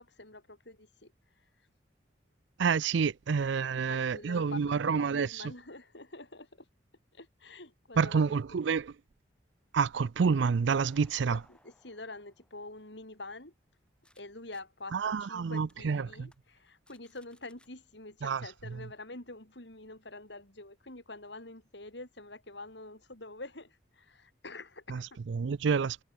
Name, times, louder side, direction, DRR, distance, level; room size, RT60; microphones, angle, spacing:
voice 1, 0.0-1.5 3.6-6.7 7.1-8.6 11.3-13.5 14.2-25.2, left 2 dB, 65° left, 5.2 m, -47 dB
voice 2, 2.6-5.3 8.0-8.8 9.7-11.4 14.9-16.3 18.2-18.4 24.9-25.0 25.3-26.0, right 5 dB, 75° right, 0.4 m, -28 dB
sound 1, 9.5-14.2 14.5-14.6 15.1-15.2 15.7-15.8 16.2-16.4 16.7-17.7, left 1 dB, 5° left, 5.0 m, -67 dB
head